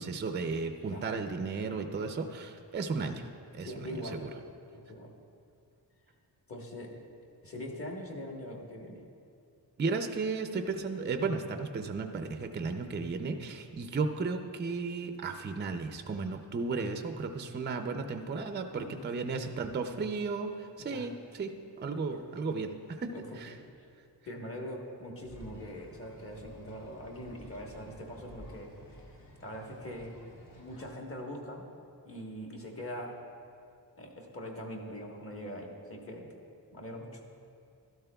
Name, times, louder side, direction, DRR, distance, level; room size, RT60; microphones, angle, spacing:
voice 1, 0.0-4.3 9.8-21.1 21.4-23.5, right 4 dB, 25° right, 6 dB, 0.4 m, -34 dB
voice 2, 3.6-4.2 4.7-5.2 6.5-6.9 7.4-9.0 18.7-19.1 20.8-21.1 22.1-22.3 23.1-23.5 24.2-30.2 30.5-31.7 32.1-33.2 34.0-36.3 36.7-37.2, equal, 30° left, 0 dB, 1.2 m, -42 dB
sound 1, 25.2-31.0, equal, 50° left, 1.4 m, -52 dB
12.5 x 12.5 x 2.3 m, 2.5 s
wide cardioid pair, 160°, 42 cm